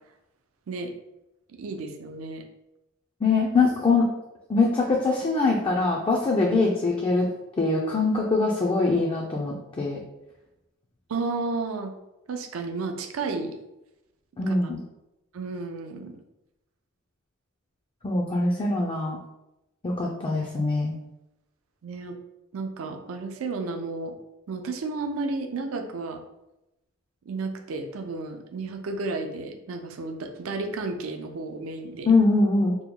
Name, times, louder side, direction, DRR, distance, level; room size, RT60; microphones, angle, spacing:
voice 1, 1.6-2.4 11.1-11.9 12.3-13.6 14.5-14.6 15.3-16.2 21.8-22.2 22.5-24.1 24.5-26.2 27.3-32.1, right 3 dB, 80° right, 5 dB, 0.4 m, -32 dB
voice 2, 3.2-4.1 4.5-7.3 7.6-10.0 14.4-14.8 18.0-19.2 19.8-21.0 32.1-32.7, left 3 dB, 25° left, -2 dB, 0.3 m, -23 dB
2.9 x 2.1 x 3.6 m, 0.92 s
head